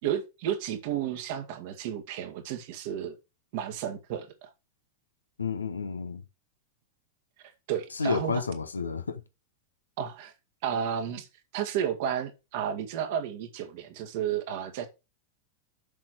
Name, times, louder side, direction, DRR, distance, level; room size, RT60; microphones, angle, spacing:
voice 1, 0.0-3.2 3.5-4.5 7.7-8.4 10.0-10.3 10.6-11.3 11.5-14.9, right 9 dB, 50° right, 1.9 m, -32 dB
voice 2, 5.4-6.2 8.0-9.2, left 5 dB, 75° left, 1.1 m, -30 dB
7.3 x 6.0 x 4.9 m
figure-of-eight pair, 90°, 0 cm